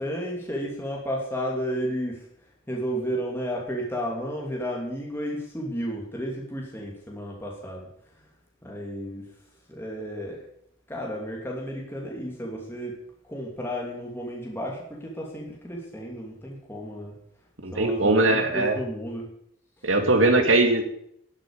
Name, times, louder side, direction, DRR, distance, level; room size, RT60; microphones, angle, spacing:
voice 1, 0.0-2.3 2.7-7.9 8.6-9.3 9.7-10.4 10.9-13.0 13.3-17.2 17.7-19.3 19.8-19.9, equal, 10° left, -2 dB, 2.7 m, -32 dB
voice 2, 17.6-18.8 19.8-20.8, right 2 dB, 85° right, 4 dB, 2.5 m, -20 dB
12.0 x 8.8 x 8.7 m, 0.69 s
head